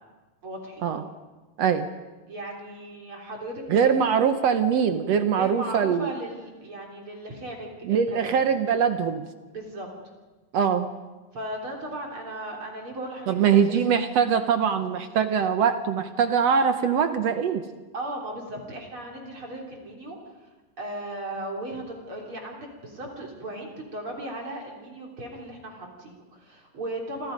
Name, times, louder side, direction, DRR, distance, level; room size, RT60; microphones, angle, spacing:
voice 1, 0.4-0.9 2.3-4.2 5.4-8.3 9.5-9.9 11.3-13.8 17.9-20.5 20.8-27.3, right 1 dB, 35° right, 0 dB, 4.1 m, -37 dB
voice 2, 1.6-1.9 3.7-6.1 7.8-9.3 10.5-10.9 13.3-17.6, right 7 dB, 65° right, 9 dB, 1.6 m, -22 dB
28.5 x 25.5 x 5.3 m, 1.2 s
omnidirectional pair, 4.0 m